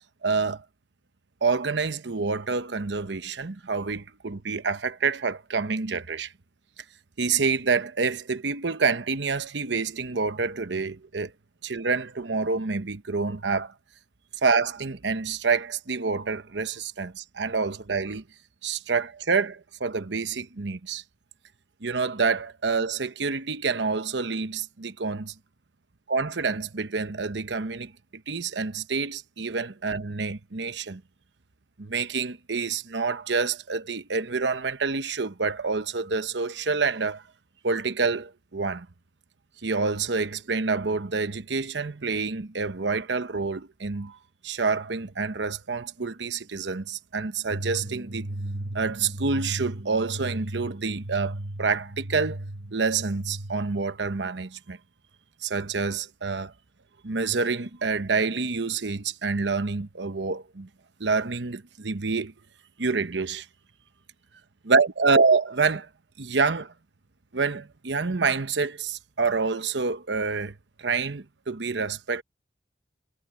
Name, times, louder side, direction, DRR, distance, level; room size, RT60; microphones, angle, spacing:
voice 1, 0.2-0.6 1.4-6.3 7.2-11.3 11.6-13.7 14.4-18.2 18.6-21.0 21.8-25.3 26.1-27.9 28.3-31.0 31.8-37.2 37.6-38.9 39.6-44.2 44.4-48.3 48.7-52.4 52.7-54.8 55.4-56.5 57.0-60.7 61.0-62.3 62.8-63.5 64.7-65.9 66.2-66.7 67.3-72.2, right 4 dB, 80° right, 1.0 m, -27 dB
sound 1, 47.5-53.7, right 1 dB, 65° right, 1.5 m, -35 dB
head